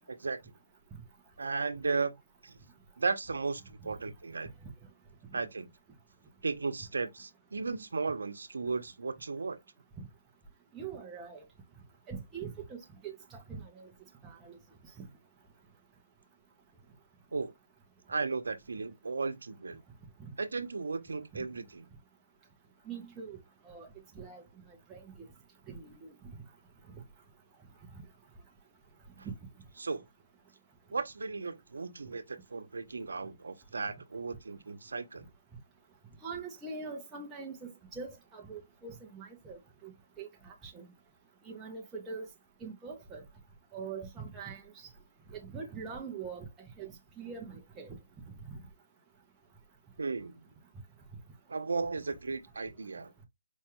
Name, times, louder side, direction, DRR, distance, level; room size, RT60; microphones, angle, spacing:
voice 1, 0.1-0.5 1.4-2.6 3.0-4.5 5.3-5.7 6.4-9.6 17.3-17.5 18.1-19.8 20.4-21.9 29.2-29.3 29.8-30.0 30.9-35.3 50.0-50.4 51.5-53.1, right 4 dB, 80° right, 0.7 m, -35 dB
voice 2, 10.7-11.4 12.1-12.8 13.0-13.9 14.2-14.6 15.0-15.1 20.2-20.3 21.3-21.4 22.9-23.4 23.6-23.9 24.2-24.4 24.9-25.0 25.7-26.1 29.2-29.3 36.2-39.9 40.2-40.9 41.5-42.3 42.6-43.2 43.7-44.6 45.3-46.5 46.8-48.0, right 5 dB, 5° right, 0.5 m, -43 dB
4.6 x 2.2 x 2.9 m
hypercardioid pair, 180°, 0 cm